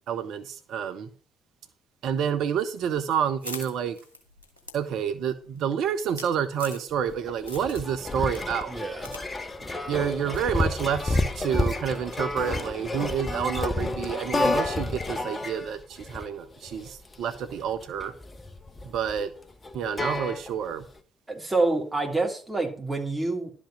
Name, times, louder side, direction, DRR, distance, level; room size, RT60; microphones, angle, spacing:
voice 1, 0.1-1.1 2.0-4.0 4.7-8.7 9.9-18.1 18.8-19.3 19.7-20.8, right 8 dB, 55° right, 0.8 m, -29 dB
sound 1, 2.8-7.1 7.4-7.9 8.3-9.2 9.5-9.6 10.3-10.5, left 1 dB, 80° left, 1.8 m, -42 dB
sound 2, 6.9-20.8, left 2 dB, 25° left, 1.1 m, -30 dB
voice 2, 8.7-9.1 9.6-9.9 21.3-23.5, right 3 dB, 15° right, 3.2 m, -27 dB
11.5 x 5.3 x 6.2 m
figure-of-eight pair, 45°, 0 cm